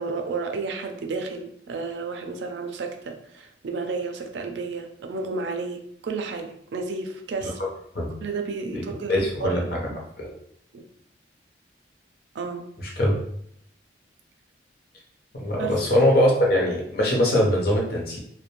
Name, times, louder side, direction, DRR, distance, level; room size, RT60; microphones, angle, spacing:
voice 1, 0.0-7.6 8.2-9.6 10.7-10.8 12.3-12.7 15.6-15.8, right 4 dB, 70° right, 5 dB, 0.4 m, -32 dB
voice 2, 8.7-9.8 10.2-10.3 13.0-13.2 15.4-18.2, left 1 dB, 55° left, -2 dB, 0.7 m, -22 dB
2.5 x 2.1 x 2.9 m, 0.70 s
head